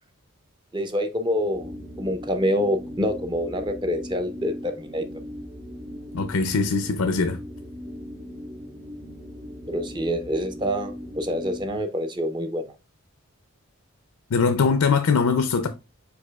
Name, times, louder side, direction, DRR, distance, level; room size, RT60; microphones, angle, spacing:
voice 1, 0.7-1.7 2.0-5.0 9.7-12.7, equal, 20° right, 0.5 m, -26 dB
sound 1, 1.4-11.9, left 1 dB, 85° right, 1.6 m, -39 dB
voice 2, 6.1-7.4 14.3-15.7, left 5 dB, 90° left, 0.5 m, -21 dB
4.8 x 4.7 x 2.3 m
head